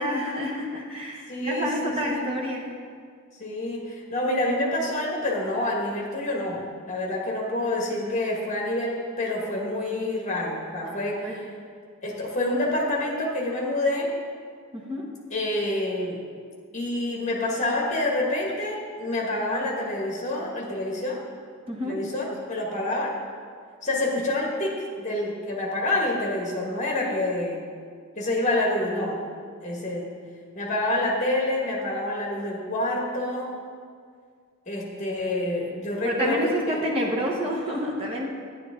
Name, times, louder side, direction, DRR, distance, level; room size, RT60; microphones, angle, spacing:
voice 1, 0.0-2.7 11.1-11.4 14.7-15.1 21.7-22.0 26.9-27.2 36.0-38.3, equal, 25° right, -2 dB, 1.1 m, -29 dB
voice 2, 1.3-2.3 3.4-11.4 12.0-14.1 15.3-16.2 16.7-21.2 21.8-23.2 23.8-27.6 28.2-29.2 29.6-30.1 30.6-33.5 34.7-36.8, left 1 dB, 35° left, -2 dB, 1.7 m, -27 dB
10.0 x 10.0 x 3.7 m, 2.1 s
head